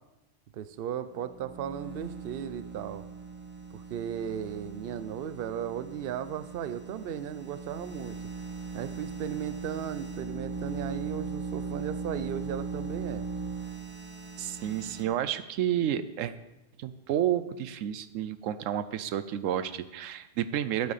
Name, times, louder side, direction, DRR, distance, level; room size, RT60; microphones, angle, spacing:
voice 1, 0.5-3.0 3.7-8.2 8.7-13.3, right 9 dB, 55° right, 13 dB, 0.7 m, -36 dB
sound 1, 1.2-15.0, right 4 dB, 10° right, 0.9 m, -39 dB
voice 2, 14.4-16.3 16.8-20.9, right 10 dB, 90° right, 13 dB, 1.0 m, -30 dB
13.5 x 8.4 x 4.1 m, 1.0 s
omnidirectional pair, 1.3 m